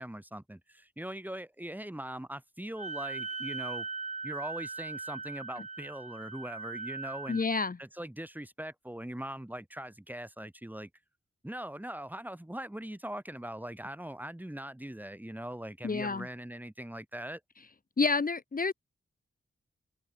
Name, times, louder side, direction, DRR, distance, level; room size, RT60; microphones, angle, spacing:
voice 1, 0.0-3.9 4.2-7.4 7.8-10.9 11.4-17.4, right 1 dB, 10° right, 2.2 m, -41 dB
Wind instrument woodwind instrument, 2.8-7.5, right 4 dB, 35° right, 1.1 m, -39 dB
voice 2, 7.3-7.8 15.8-16.3 18.0-18.7, left 4 dB, 40° left, 1.2 m, -29 dB
wide cardioid pair, 85°, 21 cm